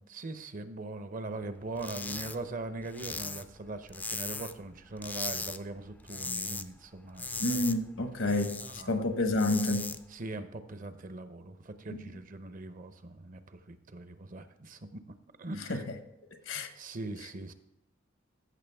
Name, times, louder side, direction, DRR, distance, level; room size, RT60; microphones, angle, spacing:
voice 1, 0.1-7.4 8.0-9.0 10.1-15.0 15.4-15.8 16.5-17.5, right 2 dB, 45° right, 11 dB, 0.7 m, -41 dB
sound 1, 1.8-2.4 2.6-4.6 5.0-5.6 5.9-6.7 7.0-8.8 9.2-10.0, left 3 dB, 10° left, 0.3 m, -38 dB
voice 2, 7.4-8.6 8.9-9.9 15.7-15.8 16.5-16.7, left 2 dB, 85° left, 8 dB, 1.1 m, -29 dB
14.5 x 6.5 x 3.5 m, 0.88 s
head